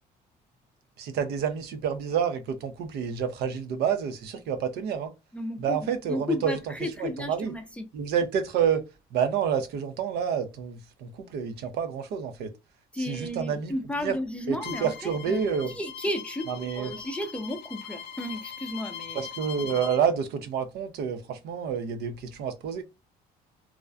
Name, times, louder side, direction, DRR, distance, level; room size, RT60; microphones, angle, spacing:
voice 1, 1.0-5.1 5.6-6.6 7.0-7.5 7.9-8.8 9.1-12.5 13.0-13.7 14.0-14.2 14.5-15.7 16.5-16.9 19.1-22.8, right 7 dB, 75° right, 0.5 m, -28 dB
voice 2, 5.3-5.8 6.1-7.9 12.9-19.2, left 1 dB, 5° left, 0.4 m, -33 dB
Bowed string instrument, 14.6-20.0, left 8 dB, 80° left, 0.5 m, -41 dB
2.4 x 2.2 x 2.4 m
cardioid pair, 110°, 17 cm